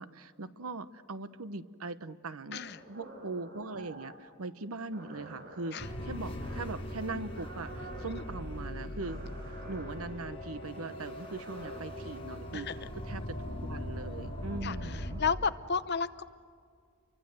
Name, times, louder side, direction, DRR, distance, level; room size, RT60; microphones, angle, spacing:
voice 1, 0.0-2.6 2.9-13.4 13.6-15.2, right 3 dB, 80° right, 13 dB, 1.0 m, -41 dB
sound 1, 2.5-4.2 4.9-5.8 6.4-6.8 7.3-8.2 9.0-9.9 11.0-11.8, right 1 dB, 45° right, 6.0 m, -49 dB
sound 2, 5.8-15.3, left 1 dB, 25° left, 5.1 m, -40 dB
voice 2, 14.6-16.2, left 5 dB, 50° left, 12 dB, 0.9 m, -33 dB
29.5 x 24.0 x 7.8 m, 2.2 s
head